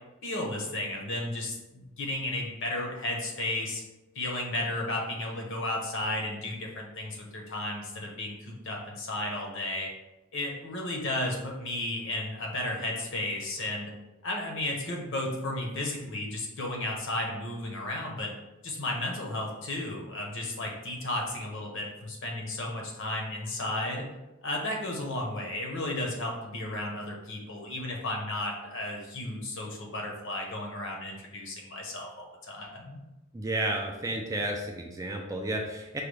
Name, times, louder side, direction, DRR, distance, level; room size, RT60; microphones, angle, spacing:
voice 1, 0.2-3.8 4.1-9.9 10.3-13.9 14.2-18.3 18.6-24.1 24.4-33.0, left 1 dB, 60° left, 0 dB, 0.8 m, -33 dB
voice 2, 33.3-36.0, right 1 dB, 15° right, 1 dB, 0.4 m, -32 dB
4.8 x 2.3 x 3.2 m, 1.0 s
head